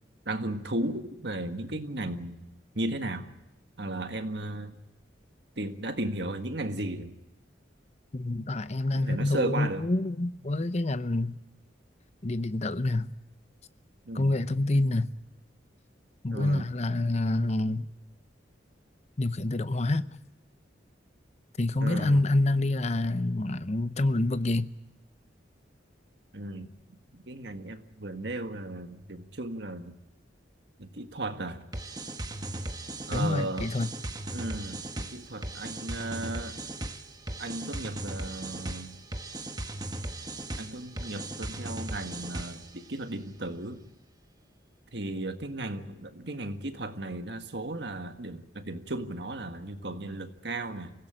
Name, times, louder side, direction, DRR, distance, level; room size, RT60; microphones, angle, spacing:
voice 1, 0.2-2.4 2.7-3.3 3.8-4.8 5.5-7.2 8.9-9.9 14.0-14.4 16.3-16.7 21.8-22.2 26.3-26.7 27.1-29.9 30.8-31.6 33.1-33.7 34.3-36.6 37.4-39.0 40.6-43.8 44.9-50.9, right 1 dB, 65° right, 1.7 m, -35 dB
voice 2, 8.1-11.3 12.2-13.1 14.1-15.1 16.2-17.9 19.2-20.0 21.6-24.7 33.1-33.9, left 2 dB, 35° left, 0.7 m, -27 dB
sound 1, 31.7-42.8, right 1 dB, 20° right, 1.3 m, -37 dB
24.5 x 16.5 x 8.9 m
head